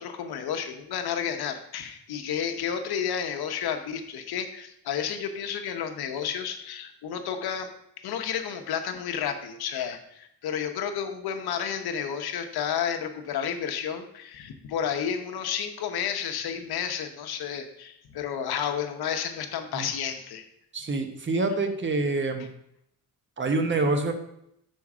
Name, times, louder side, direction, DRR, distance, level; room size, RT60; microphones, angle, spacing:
voice 1, 0.0-7.7 8.0-20.4, left 8 dB, 80° left, 6 dB, 1.0 m, -31 dB
voice 2, 20.7-22.5 23.4-24.1, right 3 dB, 30° right, 6 dB, 1.1 m, -26 dB
6.2 x 4.6 x 6.0 m, 0.75 s
cardioid pair, 115°, 37 cm